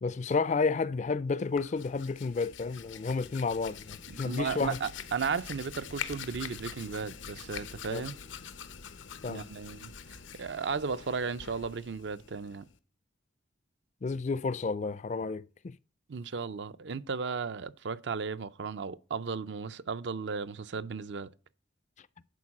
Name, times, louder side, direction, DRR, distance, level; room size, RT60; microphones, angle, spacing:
voice 1, 0.0-4.8 7.9-8.1 9.2-9.5 14.0-15.8, left 4 dB, 40° left, 0.4 m, -31 dB
Hands, 1.4-12.8, left 7 dB, 85° left, 0.8 m, -45 dB
voice 2, 4.1-8.2 9.3-12.6 16.1-21.3, right 5 dB, 65° right, 0.5 m, -35 dB
10.5 x 4.7 x 7.2 m
head